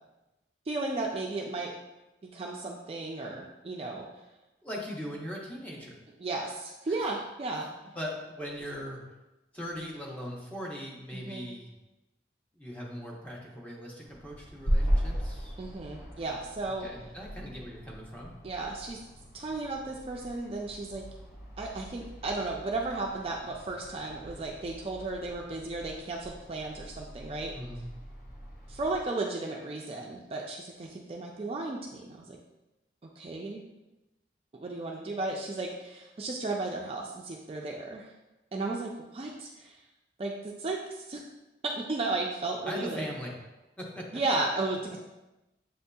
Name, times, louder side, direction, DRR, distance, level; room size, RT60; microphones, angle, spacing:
voice 1, 0.7-1.7 2.2-4.1 6.2-7.7 11.1-11.5 15.6-16.9 18.4-19.0 19.3-21.1 21.6-27.5 28.7-32.4 33.2-33.6 34.5-38.1 38.5-39.8 40.2-41.2 41.6-43.0 44.1-45.0, right 2 dB, 35° right, 0 dB, 0.3 m, -34 dB
voice 2, 4.6-6.0 6.9-7.0 7.9-9.0 9.5-11.7 12.6-15.5 16.8-18.3 27.5-27.9 42.7-43.3 43.8-44.1, equal, 10° left, -3 dB, 0.7 m, -39 dB
sound 1, 14.0-29.1, equal, 50° left, 0.7 m, -37 dB
7.2 x 2.7 x 2.2 m, 1.0 s
head